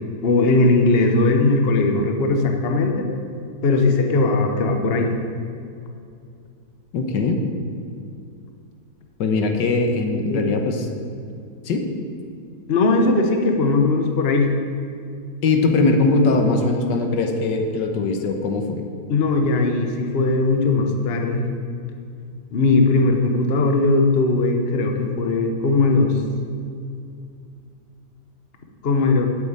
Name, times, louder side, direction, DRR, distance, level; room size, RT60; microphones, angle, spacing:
voice 1, 0.2-3.1 3.6-5.1 10.3-10.4 12.7-14.5 19.1-21.5 22.5-26.2 28.8-29.3, left 3 dB, 40° left, 4 dB, 1.1 m, -19 dB
voice 2, 6.9-7.4 9.2-10.9 11.6-11.9 15.4-18.8, left 3 dB, 75° left, 4 dB, 1.7 m, -20 dB
8.5 x 8.4 x 8.7 m, 2.4 s
omnidirectional pair, 1.9 m